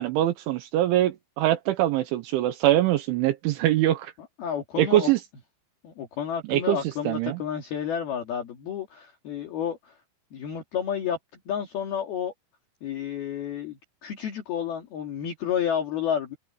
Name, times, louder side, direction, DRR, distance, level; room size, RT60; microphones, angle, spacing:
voice 1, 0.0-4.1 4.8-5.2 6.5-6.8 7.1-7.4, right 14 dB, 75° right, 3.2 m, -23 dB
voice 2, 4.4-5.1 5.8-10.0 10.3-11.2 11.5-12.3 12.8-16.4, left 8 dB, 55° left, 4.0 m, -30 dB
omnidirectional pair, 5.8 m